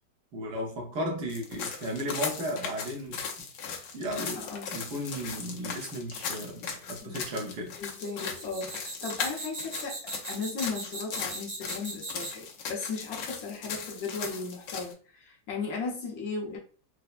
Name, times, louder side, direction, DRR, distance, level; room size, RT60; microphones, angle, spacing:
voice 1, 0.3-3.5 3.9-7.7, equal, 70° right, 1.5 m, -35 dB
sound 1, 1.3-14.9, left 6 dB, 75° left, 1.2 m, -38 dB
voice 2, 4.3-4.7 7.0-7.2 7.8-16.6, left 4 dB, 60° left, 1.4 m, -36 dB
sound 2, 7.9-12.5, right 3 dB, 40° right, 0.7 m, -39 dB
4.2 x 2.0 x 2.3 m
omnidirectional pair, 1.9 m